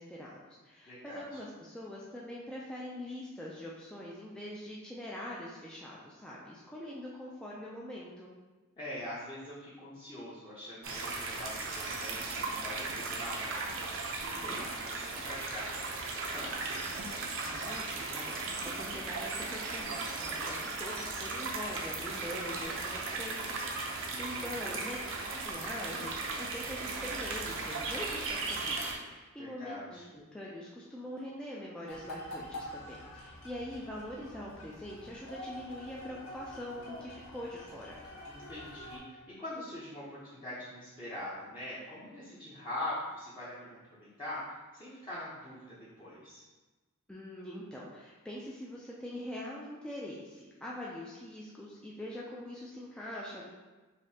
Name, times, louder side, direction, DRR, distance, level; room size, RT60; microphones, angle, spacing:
voice 1, 0.0-8.3 17.4-23.5 23.9-25.0 25.3-38.0 47.1-53.4, left 1 dB, 5° left, -5 dB, 0.3 m, -43 dB
voice 2, 0.9-1.4 8.8-16.6 24.0-24.8 29.4-30.0 38.3-46.4, left 1 dB, 20° left, -10 dB, 0.7 m, -43 dB
sound 1, 10.8-28.9, right 3 dB, 60° right, 0.6 m, -37 dB
sound 2, 31.9-39.0, left 1 dB, 70° left, 0.8 m, -46 dB
5.1 x 2.7 x 2.7 m, 1.2 s
head